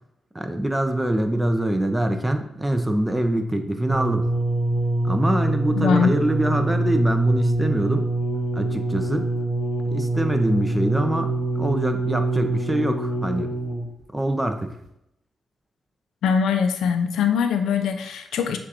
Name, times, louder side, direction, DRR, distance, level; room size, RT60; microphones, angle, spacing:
voice 1, 0.3-4.3 5.0-8.1 8.5-9.3 9.9-13.6 14.1-14.8, right 1 dB, 10° right, 6 dB, 0.6 m, -24 dB
sound 1, 3.9-14.0 14.8-14.9, right 2 dB, 75° right, 0.9 m, -25 dB
voice 2, 5.8-6.1 16.2-18.6, left 6 dB, 85° left, 6 dB, 0.5 m, -22 dB
6.7 x 2.5 x 2.9 m, 0.80 s
cardioid pair, 70°, 0 cm